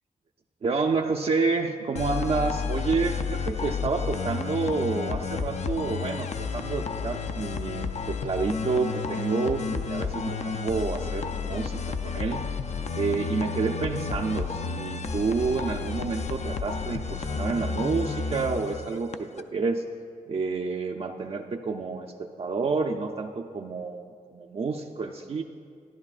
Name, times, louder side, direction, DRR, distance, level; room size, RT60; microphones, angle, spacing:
voice 1, 0.6-12.4 13.0-19.8 20.3-25.4, right 4 dB, 45° right, 3 dB, 0.4 m, -29 dB
sound 1, 2.0-19.4, left 5 dB, 50° left, 0.4 m, -31 dB
13.5 x 11.0 x 2.4 m, 2.2 s
wide cardioid pair, 125°, 14 cm